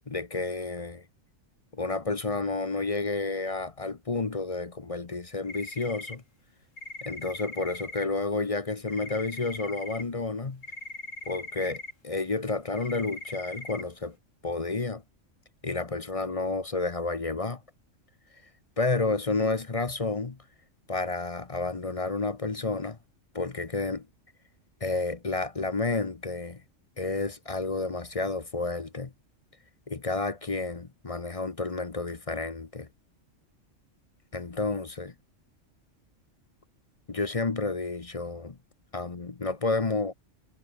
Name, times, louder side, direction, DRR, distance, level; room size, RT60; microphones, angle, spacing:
voice 1, 0.1-1.0 1.7-6.2 7.0-10.6 11.3-14.2 14.4-15.0 15.6-17.6 18.8-20.4 20.9-23.0 23.3-24.1 24.8-26.6 27.0-29.1 29.9-32.9 34.3-35.1 37.1-38.6 38.9-40.1, left 3 dB, 30° left, 1.0 m, -30 dB
sound 1, 5.5-6.2 6.8-8.0 8.9-10.0 10.6-11.9 12.8-13.8, left 2 dB, 80° left, 5.8 m, -40 dB
omnidirectional pair, 1.3 m